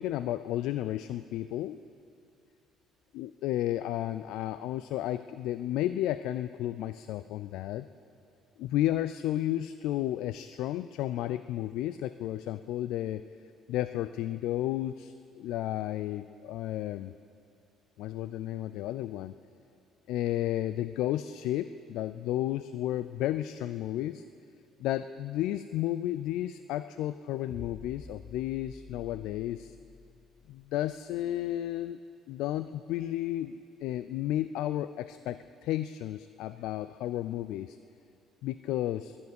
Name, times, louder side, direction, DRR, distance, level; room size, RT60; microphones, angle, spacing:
voice 1, 0.0-1.8 3.1-7.9 8.6-13.3 13.7-17.1 18.0-19.3 20.1-24.2 24.8-29.7 30.5-32.0 32.3-37.8 38.4-39.2, left 13 dB, 80° left, 13 dB, 0.4 m, -32 dB
sound 1, 27.5-30.9, left 3 dB, 20° left, 0.6 m, -50 dB
20.0 x 7.1 x 10.0 m, 2.5 s
cardioid pair, 115°, 0 cm